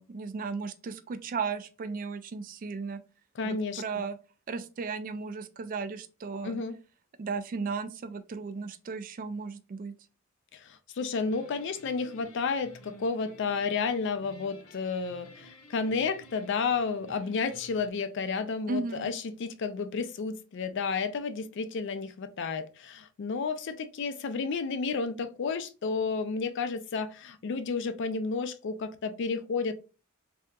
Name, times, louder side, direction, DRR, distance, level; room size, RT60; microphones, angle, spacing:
voice 1, 0.0-3.0 3.4-4.2 4.5-6.6 7.2-9.9 18.7-19.1, right 4 dB, 40° right, 0.3 m, -35 dB
voice 2, 3.4-3.8 6.4-6.8 10.5-29.7, left 4 dB, 55° left, 0.4 m, -31 dB
sound 1, 11.2-17.9, equal, 80° left, 0.8 m, -53 dB
3.4 x 2.8 x 2.3 m
head